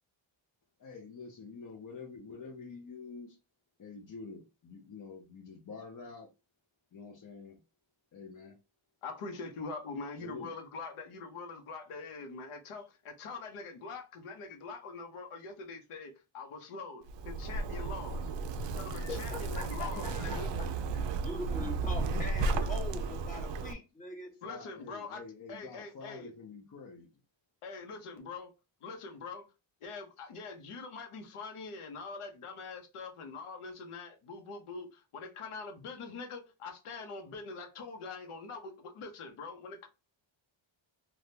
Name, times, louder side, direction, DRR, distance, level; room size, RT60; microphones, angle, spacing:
voice 1, 0.8-3.4 3.8-6.3 6.9-7.6 8.1-8.6 10.2-10.5 19.8-21.0 22.8-23.6 24.4-27.1, left 4 dB, 40° left, 0.6 m, -48 dB
voice 2, 9.0-18.2 18.7-20.5 24.4-25.2 25.5-26.3 27.6-28.5 28.8-29.5 29.8-39.9, left 4 dB, 85° left, 0.9 m, -43 dB
Zipper (clothing), 17.1-23.7, right 3 dB, 60° right, 0.5 m, -34 dB
voice 3, 18.9-20.7 21.2-24.4, left 1 dB, 15° left, 1.1 m, -42 dB
3.4 x 2.3 x 2.7 m
wide cardioid pair, 135°, 50 cm